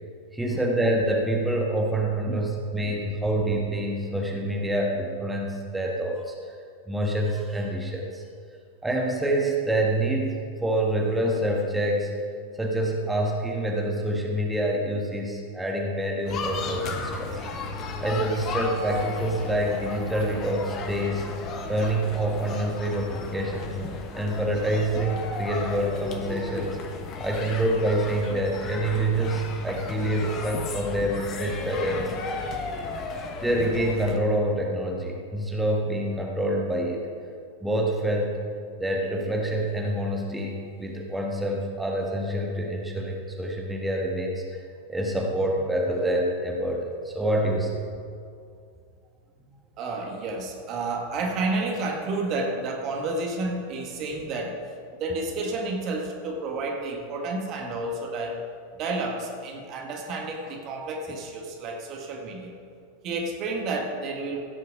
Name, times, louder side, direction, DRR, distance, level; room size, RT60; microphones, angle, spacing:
voice 1, 0.3-6.3 6.9-8.2 8.8-12.1 12.5-17.4 18.0-21.3 21.7-23.9 24.1-26.8 27.2-32.1 33.4-37.0 37.6-38.4 38.8-44.4 44.9-47.8, right 1 dB, 5° right, -1 dB, 1.5 m, -26 dB
sound 1, 16.2-34.2, left 4 dB, 30° left, 1.2 m, -34 dB
voice 2, 49.8-54.6 54.9-58.4 58.8-62.6 63.0-64.4, right 2 dB, 35° right, 1 dB, 1.4 m, -30 dB
16.0 x 6.5 x 5.2 m, 2.3 s
figure-of-eight pair, 90°, 0 cm